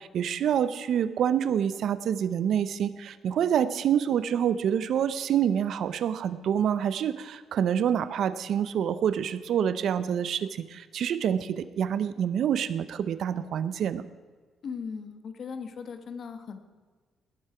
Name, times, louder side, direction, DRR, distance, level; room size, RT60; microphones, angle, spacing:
voice 1, 0.0-14.0, right 9 dB, 70° right, 14 dB, 0.6 m, -27 dB
voice 2, 14.6-16.6, left 6 dB, 55° left, 9 dB, 1.3 m, -38 dB
18.0 x 7.4 x 4.9 m, 1.4 s
cardioid pair, 90°, 0 cm